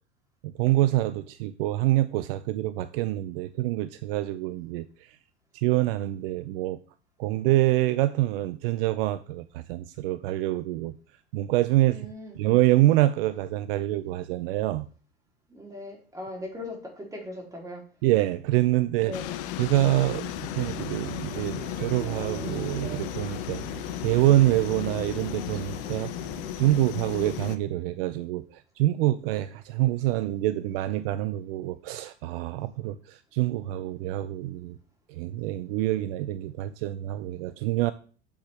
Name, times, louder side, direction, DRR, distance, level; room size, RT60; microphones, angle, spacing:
voice 1, 0.4-4.9 5.5-6.8 7.2-10.9 11.3-12.0 12.3-14.9 18.0-19.2 19.6-23.6 24.0-26.1 26.6-34.8 35.1-37.9, right 16 dB, 60° right, 0.6 m, -26 dB
voice 2, 11.9-12.4 15.5-17.8 19.0-19.5, left 1 dB, 10° right, 3.4 m, -39 dB
sound 1, 19.1-27.6, left 13 dB, 60° left, 0.9 m, -35 dB
sound 2, 20.3-26.8, right 5 dB, 30° right, 2.1 m, -42 dB
8.7 x 7.7 x 3.5 m
hypercardioid pair, 95°, 32 cm